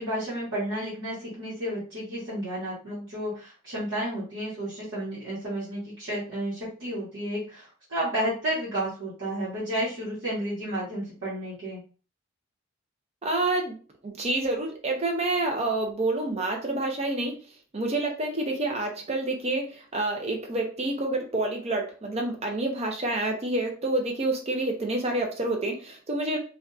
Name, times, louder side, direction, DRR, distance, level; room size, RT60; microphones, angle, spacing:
voice 1, 0.0-11.8, right 1 dB, 60° right, -9 dB, 1.1 m, -32 dB
voice 2, 13.2-13.8 14.0-17.4 17.7-26.4, right 2 dB, 30° right, 2 dB, 0.5 m, -28 dB
2.6 x 2.3 x 2.3 m, 0.37 s
head